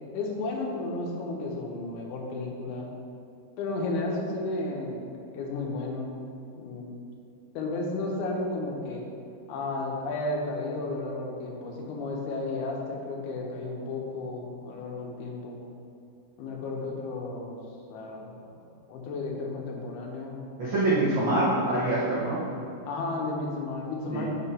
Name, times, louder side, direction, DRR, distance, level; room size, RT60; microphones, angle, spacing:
voice 1, 0.1-2.9 3.6-5.0 5.3-6.3 6.5-6.9 7.5-9.0 9.5-15.6 16.4-17.6 17.9-18.6 18.9-20.4 21.0-21.4 22.9-24.3, left 2 dB, 85° left, 0 dB, 3.1 m, -33 dB
voice 2, 20.6-22.4 24.1-24.3, right 2 dB, 80° right, -8 dB, 1.0 m, -25 dB
7.9 x 6.0 x 4.2 m, 2.8 s
omnidirectional pair, 4.4 m